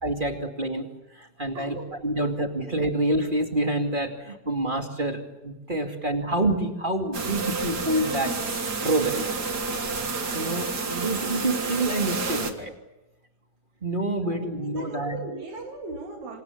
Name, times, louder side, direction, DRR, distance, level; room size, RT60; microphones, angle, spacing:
voice 1, 0.0-1.8 2.0-9.3 10.3-12.7 13.8-15.2, right 1 dB, 15° right, 3 dB, 2.1 m, -27 dB
voice 2, 1.5-2.4 5.9-6.3 14.2-16.4, right 3 dB, 65° right, 2 dB, 3.6 m, -39 dB
sound 1, 7.1-12.5, right 4 dB, 35° right, 2.0 m, -30 dB
27.0 x 26.5 x 7.3 m, 0.98 s
omnidirectional pair, 3.7 m